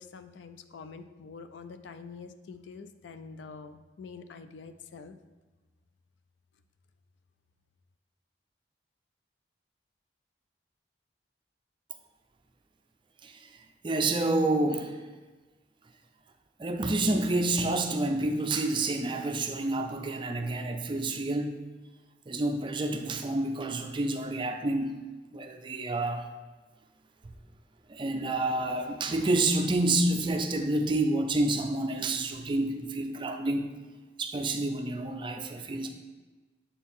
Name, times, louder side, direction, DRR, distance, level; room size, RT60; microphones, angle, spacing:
voice 1, 0.0-5.3, left 5 dB, 80° left, 10 dB, 0.4 m, -46 dB
voice 2, 13.8-15.0 16.6-21.6 22.3-24.9 25.3-26.2 27.9-33.7 34.2-35.9, right 2 dB, 25° right, 6 dB, 0.4 m, -28 dB
7.0 x 4.4 x 3.6 m, 1.3 s
head